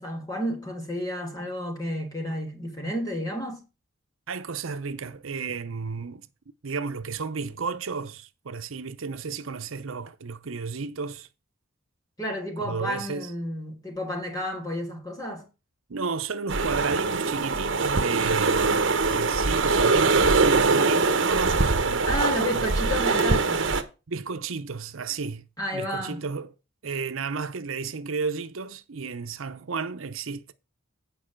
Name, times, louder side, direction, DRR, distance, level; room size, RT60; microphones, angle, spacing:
voice 1, 0.0-3.6 12.2-15.5 22.0-23.8 25.6-26.2, equal, 15° left, 2.8 m, -31 dB
voice 2, 4.3-6.3 6.6-11.3 12.6-13.3 15.9-22.7 24.1-25.4 25.7-26.5 26.8-30.5, right 4 dB, 75° right, 0.7 m, -33 dB
sound 1, 16.5-23.8, right 3 dB, 60° right, 1.1 m, -22 dB
9.0 x 5.3 x 5.9 m
head